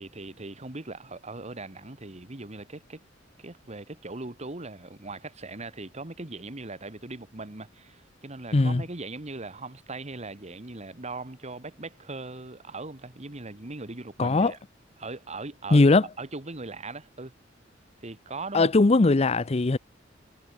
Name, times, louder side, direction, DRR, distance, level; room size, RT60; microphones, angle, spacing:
voice 1, 0.0-3.0 3.4-14.6 15.0-15.9 16.2-17.3 18.0-18.7, right 3 dB, 35° right, 1.7 m, -39 dB
voice 2, 8.5-8.8 14.2-14.5 15.7-16.0 18.5-19.8, left 3 dB, 35° left, 0.6 m, -19 dB
head